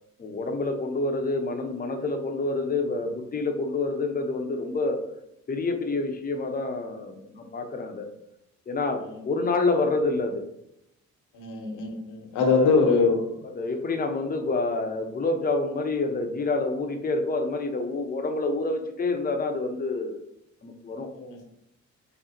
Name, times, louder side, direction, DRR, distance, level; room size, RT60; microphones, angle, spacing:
voice 1, 0.2-5.0 5.5-8.1 8.7-10.4 12.5-13.0 13.5-20.2 20.6-21.1, left 3 dB, 30° left, 4 dB, 0.7 m, -28 dB
voice 2, 11.3-13.3 21.1-21.4, left 4 dB, 80° left, 2 dB, 1.0 m, -23 dB
3.8 x 2.1 x 4.2 m, 0.80 s
cardioid pair, 90°, 30 cm